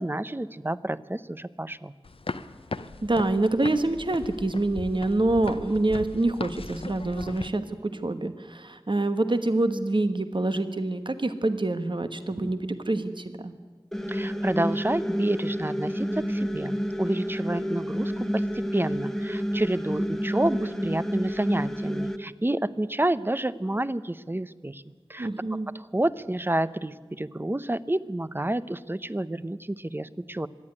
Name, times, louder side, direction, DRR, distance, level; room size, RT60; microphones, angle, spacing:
voice 1, 0.0-1.9 14.1-24.8 25.1-25.3 25.7-30.5, right 1 dB, 20° right, 15 dB, 0.7 m, -29 dB
sound 1, 2.0-7.5, left 3 dB, 75° left, 0.7 m, -38 dB
voice 2, 3.0-13.5 25.2-25.7, right 2 dB, 55° right, 9 dB, 1.2 m, -26 dB
sound 2, 13.9-22.2, equal, 5° left, 1.2 m, -29 dB
24.5 x 10.5 x 9.8 m, 1.5 s
wide cardioid pair, 45°, 10 cm